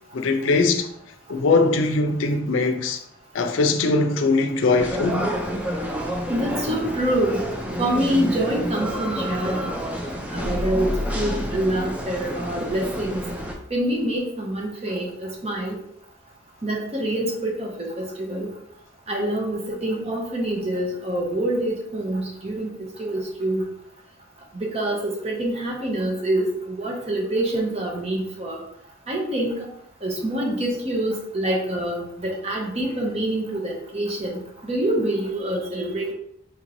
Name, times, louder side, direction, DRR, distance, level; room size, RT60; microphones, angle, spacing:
voice 1, 0.1-0.9 1.3-3.0 3.3-5.3, left 3 dB, 80° left, 0.4 m, -21 dB
sound 1, 4.8-13.6, equal, 5° right, 0.4 m, -29 dB
voice 2, 6.3-7.5 7.8-9.7 10.3-13.2 13.7-15.8 16.6-18.5 19.1-23.7 24.5-28.6 29.1-29.7 30.0-36.1, right 1 dB, 35° right, 0.9 m, -26 dB
4.4 x 3.0 x 2.6 m
head